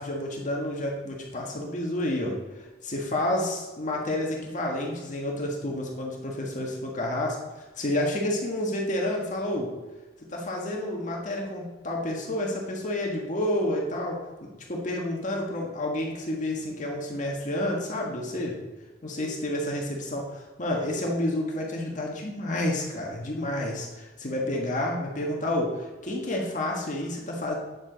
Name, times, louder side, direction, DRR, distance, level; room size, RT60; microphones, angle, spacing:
voice 1, 0.0-9.7 10.3-18.6 19.0-27.6, left 1 dB, 45° left, -1 dB, 1.5 m, -30 dB
9.6 x 7.3 x 4.0 m, 1.2 s
head